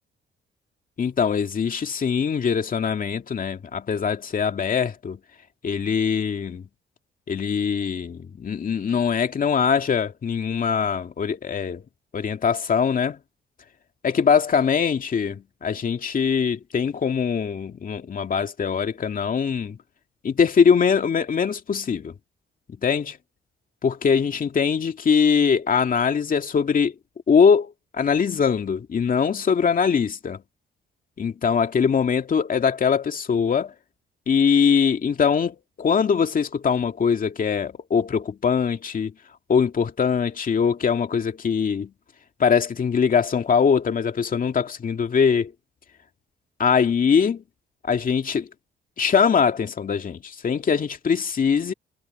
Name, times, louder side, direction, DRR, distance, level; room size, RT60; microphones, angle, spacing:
voice 1, 1.0-5.2 5.6-6.6 7.3-11.8 12.1-13.2 14.0-19.8 20.2-22.1 22.8-23.0 23.8-26.9 27.3-30.4 31.2-33.7 34.3-39.1 39.5-41.9 42.4-45.5 46.6-47.4 47.8-48.5 49.0-51.7, left 6 dB, 45° left, 2.3 m, -22 dB
cardioid pair, 90°, 20 cm